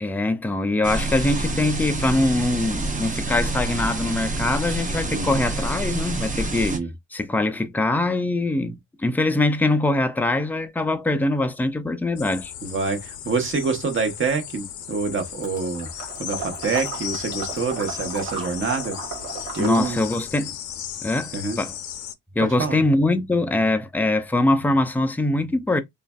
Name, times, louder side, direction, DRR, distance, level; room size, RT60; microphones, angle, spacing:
voice 1, 0.0-6.8 7.1-12.5 19.6-20.6 21.0-21.7 22.4-25.8, left 2 dB, 5° left, 0.4 m, -23 dB
sound 1, 0.8-6.8, right 2 dB, 25° right, 0.7 m, -27 dB
sound 2, 12.2-22.1, left 10 dB, 75° left, 0.6 m, -36 dB
voice 2, 12.6-15.9 16.2-19.0 19.6-20.0 21.3-21.6 22.4-22.8, right 4 dB, 45° right, 1.0 m, -26 dB
Water / Liquid, 15.4-20.3, right 4 dB, 90° right, 1.6 m, -35 dB
3.2 x 2.4 x 2.2 m
cardioid pair, 90°, 30 cm